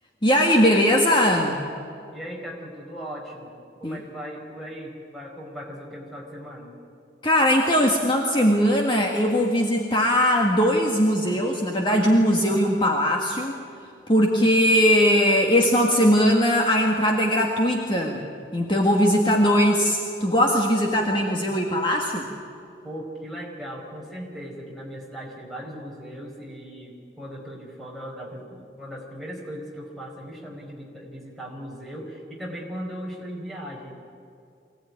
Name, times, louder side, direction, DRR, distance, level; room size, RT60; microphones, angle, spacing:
voice 1, 0.2-1.6 3.8-4.0 7.2-13.6 14.1-18.3 18.5-22.3, equal, 25° left, 0 dB, 1.8 m, -20 dB
voice 2, 2.1-3.5 3.8-6.7 22.8-34.0, equal, ahead, -2 dB, 4.7 m, -38 dB
24.5 x 17.5 x 9.6 m, 2.5 s
head